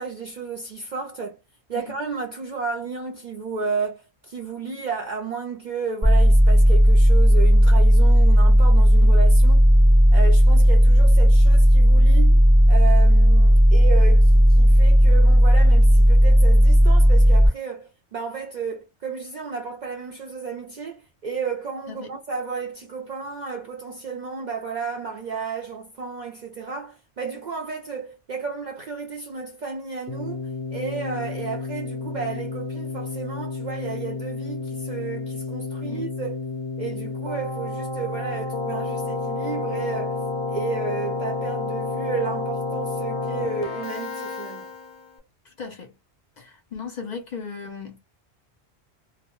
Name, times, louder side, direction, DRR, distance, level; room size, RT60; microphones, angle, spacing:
voice 1, 0.0-1.4 1.7-9.6 10.1-12.4 12.7-30.4 30.7-36.4 36.8-40.2 40.5-44.7, right 5 dB, 55° right, 0.5 m, -32 dB
sound 1, 6.0-17.5, equal, 10° right, 0.6 m, -14 dB
Keyboard (musical), 30.1-45.1, left 3 dB, 90° left, 0.9 m, -30 dB
voice 2, 45.5-45.9 46.4-48.0, left 5 dB, 55° left, 0.5 m, -37 dB
2.1 x 2.1 x 2.8 m
omnidirectional pair, 1.1 m